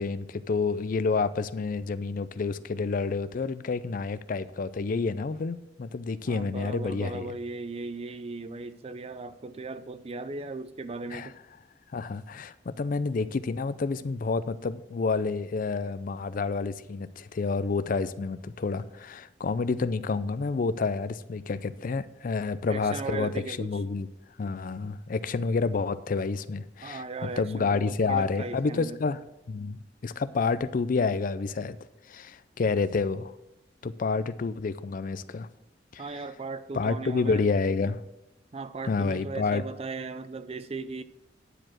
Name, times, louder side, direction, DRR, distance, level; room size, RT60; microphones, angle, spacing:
voice 1, 0.0-7.3 11.1-11.3 11.9-24.1 24.4-27.0 27.4-29.2 29.5-31.8 32.1-33.3 33.8-35.5 35.9-36.0 36.7-38.0 38.9-39.6, left 4 dB, 50° left, 0.4 m, -29 dB
voice 2, 6.3-11.4 22.7-23.8 26.8-29.0 36.0-37.5 38.5-41.0, right 3 dB, 35° right, 0.5 m, -37 dB
9.9 x 4.8 x 7.4 m
head